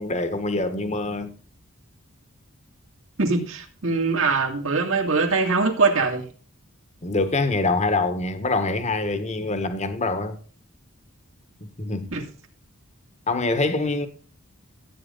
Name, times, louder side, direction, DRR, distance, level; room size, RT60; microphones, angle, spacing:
voice 1, 0.0-1.3 7.0-10.4 11.6-12.1 13.3-14.1, left 3 dB, 30° left, 1.4 m, -25 dB
voice 2, 3.2-6.3 12.1-12.2, right 4 dB, 65° right, 2.4 m, -22 dB
14.0 x 9.2 x 4.0 m
head